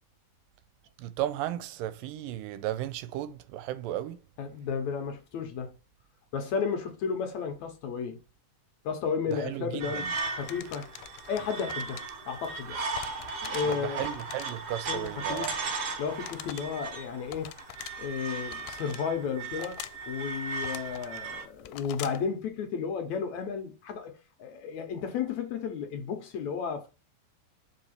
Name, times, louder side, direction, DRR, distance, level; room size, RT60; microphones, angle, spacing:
voice 1, 1.0-4.2 9.3-10.1 13.6-15.5, right 13 dB, 85° right, 2.3 m, -35 dB
voice 2, 4.4-5.7 6.3-8.2 8.8-10.1 10.3-10.9 11.3-12.8 13.4-14.1 14.9-15.5 16.0-17.6 18.0-26.9, left 6 dB, 65° left, 2.1 m, -33 dB
sound 1, 9.8-21.5, right 4 dB, 60° right, 1.3 m, -37 dB
sound 2, 10.2-22.3, left 15 dB, 90° left, 2.3 m, -46 dB
5.9 x 4.7 x 4.3 m
omnidirectional pair, 3.9 m